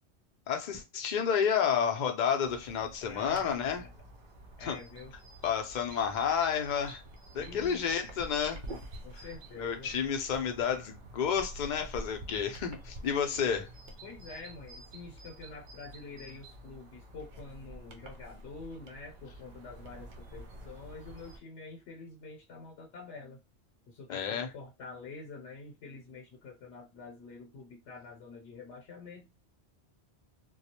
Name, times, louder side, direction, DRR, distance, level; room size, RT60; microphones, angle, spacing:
voice 1, 0.5-3.8 4.6-4.8 5.4-7.0 7.3-8.6 9.1-9.2 9.6-13.7 24.1-24.5, left 7 dB, 55° left, 0.6 m, -30 dB
sound 1, 2.4-21.4, right 1 dB, 55° right, 0.6 m, -48 dB
voice 2, 3.1-3.9 4.6-5.1 7.4-8.0 9.0-9.9 14.0-23.4 23.9-29.3, left 4 dB, 80° left, 0.9 m, -47 dB
2.3 x 2.0 x 2.8 m
omnidirectional pair, 1.1 m